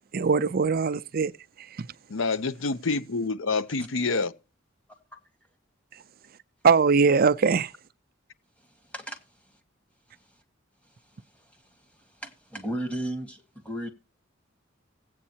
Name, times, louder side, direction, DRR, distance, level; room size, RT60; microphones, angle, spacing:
voice 1, 0.1-1.3 1.6-1.9 5.9-6.0 6.6-7.7, right 5 dB, 45° right, 0.5 m, -22 dB
voice 2, 2.1-4.3, left 3 dB, 75° left, 0.7 m, -27 dB
voice 3, 8.8-9.2 11.3-11.6 12.1-13.9, right 1 dB, 5° left, 1.7 m, -35 dB
16.5 x 8.6 x 2.8 m
head